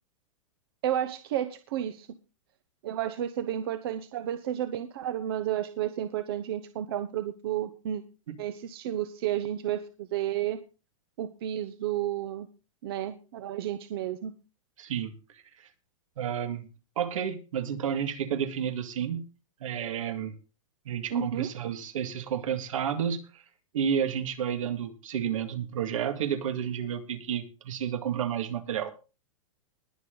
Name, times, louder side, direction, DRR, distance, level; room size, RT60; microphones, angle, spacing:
voice 1, 0.8-2.1 2.8-8.0 8.4-10.6 11.2-12.5 12.8-14.3 21.1-21.5, right 11 dB, 45° right, 10 dB, 1.0 m, -31 dB
voice 2, 14.8-15.7 16.2-16.7 17.0-19.3 19.6-20.3 20.9-23.4 23.7-28.9, right 8 dB, 70° right, 9 dB, 2.1 m, -31 dB
21.0 x 7.0 x 3.9 m, 0.32 s
supercardioid pair, 175°, 18 cm